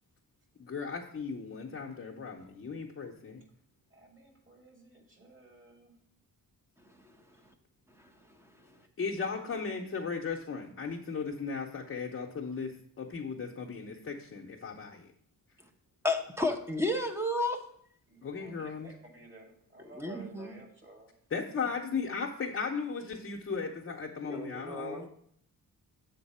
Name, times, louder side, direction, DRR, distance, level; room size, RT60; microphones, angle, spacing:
voice 1, 0.6-3.4 9.0-15.1 18.2-18.9 21.3-25.1, left 5 dB, 35° left, -1 dB, 0.8 m, -36 dB
voice 2, 3.9-5.9 9.0-9.3 9.5-9.6 18.1-21.1, right 2 dB, 35° right, 1 dB, 2.1 m, -53 dB
voice 3, 6.8-7.5 8.0-8.1 8.4-8.8 16.0-17.6 19.8-20.5 24.3-25.1, left 2 dB, 5° right, 5 dB, 0.8 m, -33 dB
7.3 x 3.9 x 5.4 m, 0.66 s
cardioid pair, 115°, 35 cm